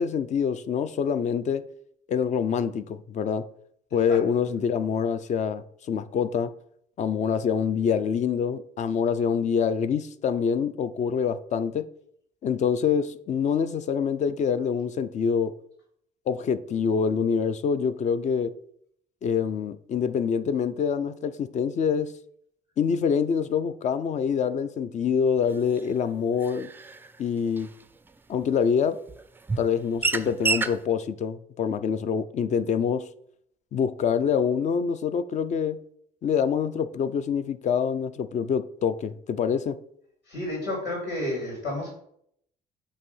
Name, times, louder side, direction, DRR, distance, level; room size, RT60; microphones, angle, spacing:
voice 1, 0.0-1.7 2.1-3.5 3.9-6.5 7.0-11.9 12.4-15.5 16.3-18.5 19.2-22.1 22.8-26.7 27.2-27.7 28.3-29.0 29.6-33.1 33.7-35.8 36.2-39.8, left 7 dB, 45° left, 0.5 m, -25 dB
sound 1, 25.8-25.9 26.4-27.1 27.5-27.6 28.4-28.5 29.1-29.2 29.5-29.7 30.0-30.8, right 4 dB, 10° right, 0.4 m, -28 dB
voice 2, 40.3-41.9, left 1 dB, 75° left, 2.9 m, -31 dB
8.3 x 2.8 x 5.4 m
cardioid pair, 110°, 17 cm